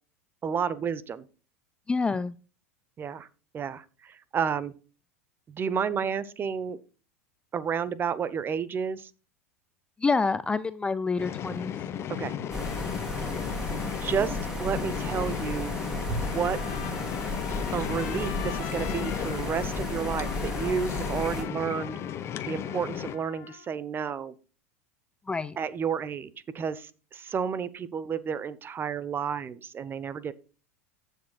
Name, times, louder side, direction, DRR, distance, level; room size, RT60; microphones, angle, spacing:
voice 1, 0.4-1.2 3.0-3.3 3.5-4.7 5.5-6.8 7.5-9.1 12.2-12.3 14.0-15.8 16.3-16.6 17.7-22.0 22.5-24.3 25.6-30.3, right 7 dB, 30° right, 17 dB, 0.8 m, -31 dB
voice 2, 1.9-2.4 10.0-11.7 21.5-21.6 25.3-25.6, left 4 dB, 15° left, 15 dB, 0.3 m, -27 dB
sound 1, 11.2-23.2, left 9 dB, 35° left, 1.0 m, -34 dB
sound 2, 12.5-21.4, left 1 dB, 5° right, 3.4 m, -34 dB
Trumpet, 16.0-23.7, left 13 dB, 60° left, 1.3 m, -44 dB
15.0 x 6.5 x 2.3 m, 0.34 s
hypercardioid pair, 85°, 8 cm